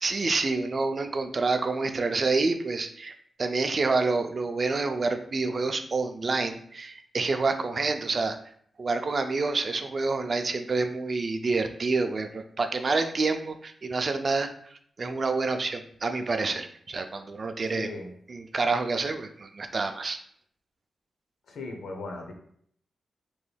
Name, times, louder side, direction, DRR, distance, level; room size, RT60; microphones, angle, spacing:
voice 1, 0.0-3.1 3.4-8.4 8.8-14.5 15.0-17.9 18.3-20.2, right 3 dB, 45° right, 7 dB, 0.3 m, -28 dB
voice 2, 17.7-18.1 21.5-22.3, left 2 dB, 85° left, 3 dB, 0.6 m, -37 dB
3.2 x 3.0 x 2.2 m, 0.64 s
cardioid pair, 90°, 0 cm